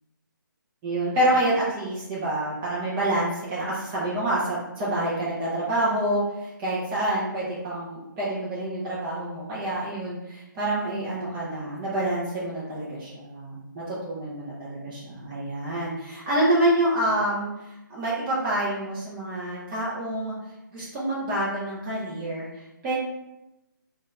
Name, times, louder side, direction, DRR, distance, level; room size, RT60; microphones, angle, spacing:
voice 1, 0.8-17.5 17.9-20.4 20.7-22.9, right 1 dB, 10° right, -8 dB, 0.3 m, -27 dB
2.7 x 2.1 x 3.4 m, 0.93 s
figure-of-eight pair, 150°, 11 cm